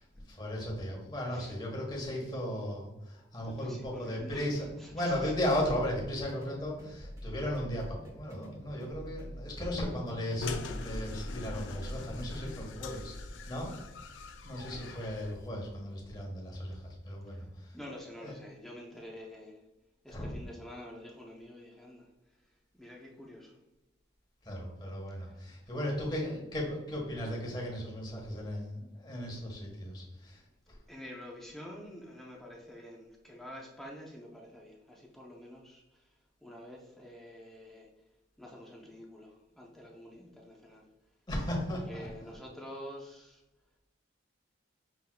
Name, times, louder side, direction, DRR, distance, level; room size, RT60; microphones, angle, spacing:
voice 1, 0.3-4.7 4.9-13.1 13.5-13.7 14.4-17.7 18.2-18.3 20.1-20.3 24.4-30.4 30.7-30.8 41.3-42.3, left 1 dB, 20° left, -2 dB, 1.2 m, -36 dB
voice 2, 1.2-1.6 3.4-5.3 17.3-19.6 20.0-23.6 25.1-25.7 30.9-37.9 38.4-40.9 41.6-43.4, equal, ahead, -2 dB, 0.6 m, -48 dB
sound 1, 4.5-12.6, equal, 15° right, 1.0 m, -46 dB
sound 2, 10.4-15.5, left 2 dB, 70° left, 0.5 m, -41 dB
5.9 x 3.5 x 2.2 m, 0.95 s
head